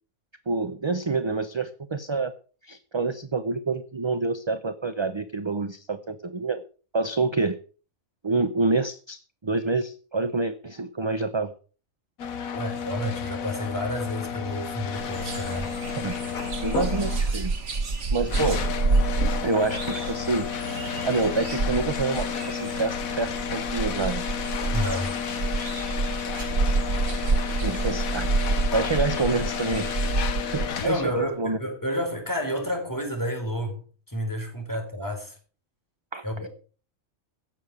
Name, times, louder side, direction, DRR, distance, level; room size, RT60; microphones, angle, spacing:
voice 1, 0.5-2.3 2.6-6.6 6.9-7.6 8.2-11.5 16.0-16.1 16.6-17.5 18.1-18.6 19.4-20.5 20.8-24.2 26.3-26.8 27.6-28.3 28.7-29.9 30.4-31.6 36.1-36.5, right 3 dB, 25° right, 0.6 m, -27 dB
sound 1, 12.2-31.2, left 7 dB, 85° left, 1.6 m, -32 dB
voice 2, 12.5-15.7 24.7-25.2 30.8-35.4 36.2-36.5, left 1 dB, 15° left, 4.1 m, -30 dB
sound 2, 15.0-30.7, right 3 dB, 60° right, 2.1 m, -28 dB
16.0 x 7.3 x 6.4 m
omnidirectional pair, 1.4 m